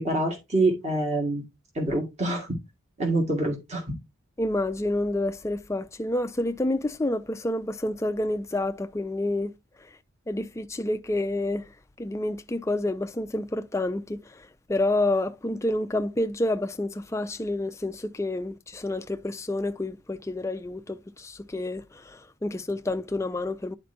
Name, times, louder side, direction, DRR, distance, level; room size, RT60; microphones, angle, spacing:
voice 1, 0.0-1.4 1.8-2.5 3.0-3.9, right 2 dB, 30° right, 1.8 m, -26 dB
voice 2, 4.4-9.5 9.8-9.9 10.3-11.7 12.0-23.7, left 1 dB, 15° left, 0.3 m, -29 dB
11.0 x 4.3 x 2.7 m
head